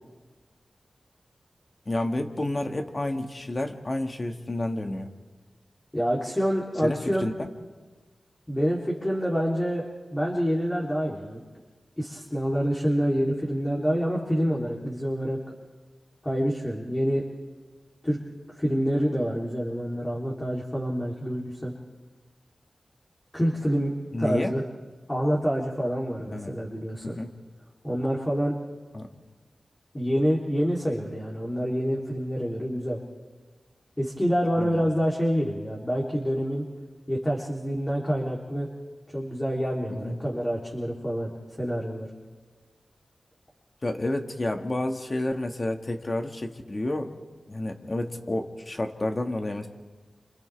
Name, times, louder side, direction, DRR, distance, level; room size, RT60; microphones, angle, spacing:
voice 1, 1.9-5.1 6.8-7.5 24.1-24.6 26.3-26.6 27.0-27.3 28.9-29.1 34.6-34.8 39.9-40.2 43.8-47.2 47.5-49.7, left 1 dB, 35° left, 4 dB, 1.9 m, -30 dB
voice 2, 5.9-7.3 8.5-9.8 10.1-11.4 12.0-15.4 16.2-17.3 18.0-18.2 18.6-21.7 23.3-23.9 24.2-24.6 25.1-27.2 27.8-28.6 29.9-33.0 34.0-36.6 37.1-38.7 39.1-41.3 41.6-42.1, equal, 15° left, -3 dB, 3.4 m, -27 dB
30.0 x 27.5 x 3.5 m, 1.4 s
wide cardioid pair, 65°, 0 cm